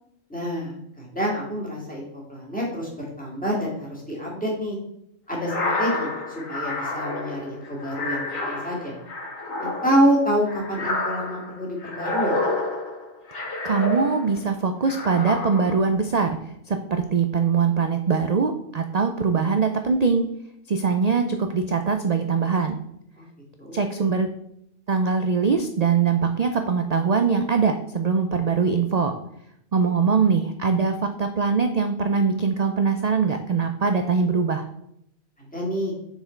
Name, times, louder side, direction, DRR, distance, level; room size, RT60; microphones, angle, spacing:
voice 1, 0.3-4.8 5.3-9.0 9.6-12.4 23.2-23.3 23.6-23.8 35.4-35.9, equal, 5° left, -4 dB, 2.3 m, -27 dB
sound 1, 5.4-14.4 14.8-15.9, left 2 dB, 85° left, 1.9 m, -29 dB
voice 2, 13.6-16.4 16.7-20.3 20.7-22.8 23.7-24.3 24.9-29.1 29.7-34.6, right 5 dB, 80° right, 6 dB, 0.3 m, -22 dB
6.8 x 4.6 x 4.4 m, 0.77 s
omnidirectional pair, 1.4 m